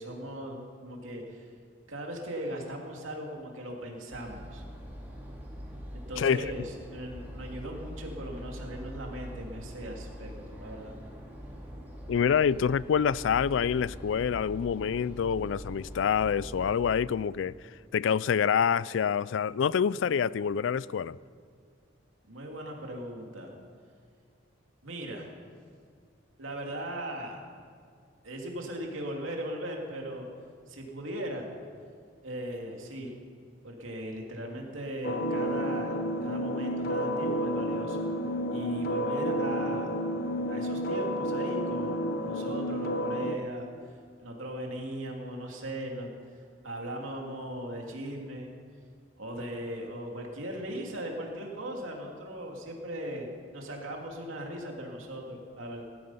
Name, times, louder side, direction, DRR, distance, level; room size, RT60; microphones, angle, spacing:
voice 1, 0.0-1.5 1.9-4.6 5.9-11.0 22.3-23.5 24.8-25.3 26.4-27.4 28.2-30.3 30.7-31.5 32.2-33.1 33.6-38.0 38.5-39.9 40.5-43.7 44.2-46.1 46.6-48.5 49.2-55.8, right 1 dB, 85° right, 2.7 m, -38 dB
sound 1, 4.1-17.0, equal, 10° right, 2.5 m, -43 dB
voice 2, 6.2-6.5 12.1-17.5 17.9-21.2, left 7 dB, 70° left, 0.3 m, -26 dB
sound 2, 35.0-43.4, equal, 50° left, 0.9 m, -31 dB
17.0 x 13.5 x 5.6 m
head